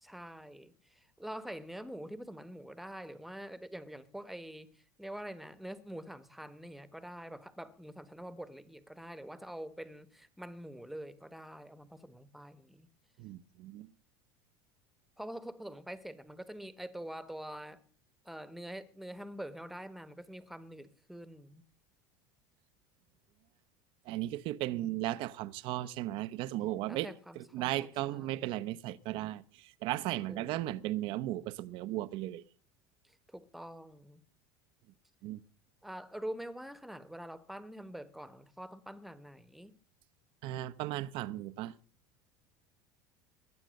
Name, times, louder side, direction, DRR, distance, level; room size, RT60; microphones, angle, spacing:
voice 1, 0.0-12.9 15.2-17.8 18.2-21.6 24.7-24.9 26.9-28.5 30.3-30.5 33.0-34.2 35.8-39.7, right 1 dB, ahead, 1.3 m, -45 dB
voice 2, 13.2-13.9 24.1-27.1 27.4-32.4 35.2-35.4 40.4-41.7, right 15 dB, 60° right, 0.9 m, -36 dB
20.5 x 9.0 x 6.5 m
supercardioid pair, 125°, 10 cm